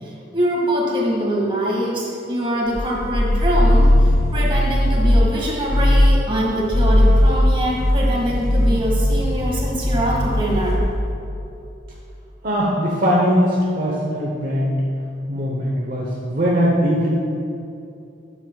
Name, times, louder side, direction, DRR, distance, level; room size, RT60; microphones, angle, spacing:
voice 1, 0.0-10.8, equal, 30° right, -3 dB, 2.0 m, -23 dB
sound 1, 2.7-5.3 5.7-6.2 6.6-10.9, left 1 dB, 20° left, 1.3 m, -17 dB
voice 2, 12.4-14.8 15.3-17.1, equal, 50° right, -4 dB, 1.0 m, -20 dB
12.0 x 8.6 x 2.4 m, 2.7 s
head